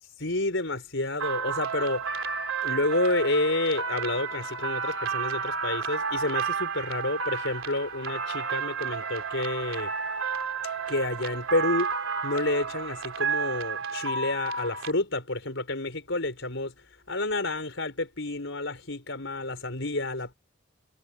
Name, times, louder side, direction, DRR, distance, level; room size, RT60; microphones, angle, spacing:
voice 1, 0.2-2.2 2.6-9.9 10.9-16.7 17.1-20.3, left 2 dB, 60° left, 6.0 m, -29 dB
sound 1, 1.2-14.9, right 5 dB, 80° right, 3.1 m, -31 dB
head